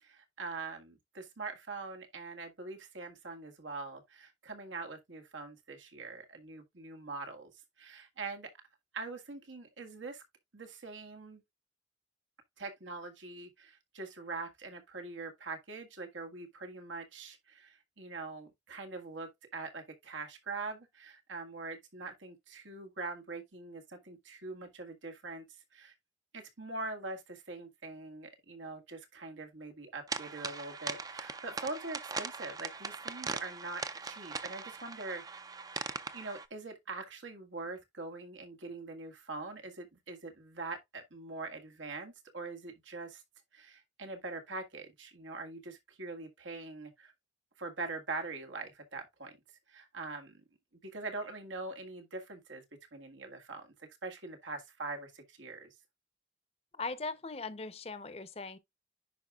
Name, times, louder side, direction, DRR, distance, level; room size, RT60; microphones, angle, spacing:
voice 1, 0.0-7.5 7.8-8.5 8.9-10.2 10.5-11.4 12.6-25.5 25.7-26.0 26.3-35.4 36.1-43.2 43.5-47.1 47.6-49.4 49.7-50.4 50.8-52.6 52.9-55.7, right 3 dB, 90° right, 1.7 m, -43 dB
sound 1, 30.1-36.5, right 4 dB, 20° right, 0.4 m, -40 dB
voice 2, 56.8-58.6, left 3 dB, 30° left, 0.7 m, -39 dB
10.5 x 4.7 x 2.3 m
head